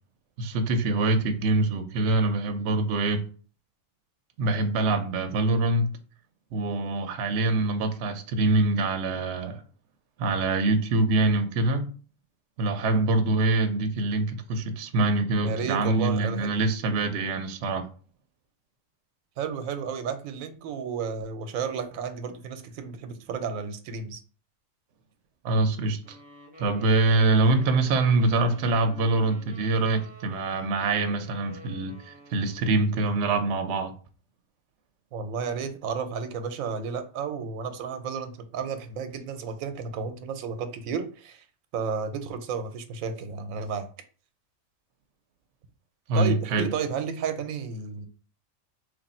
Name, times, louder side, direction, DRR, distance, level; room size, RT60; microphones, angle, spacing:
voice 1, 0.4-3.2 4.4-5.9 6.5-9.6 10.2-11.9 12.6-17.9 25.4-26.2 26.6-33.9 46.1-46.7, right 2 dB, 65° right, 0.8 m, -24 dB
voice 2, 15.4-16.5 19.4-24.2 35.1-41.4 41.7-43.9 46.1-48.1, right 6 dB, 85° right, 1.0 m, -32 dB
sound 1, 26.0-32.8, left 1 dB, 20° right, 0.7 m, -48 dB
3.3 x 2.6 x 4.1 m
omnidirectional pair, 1.4 m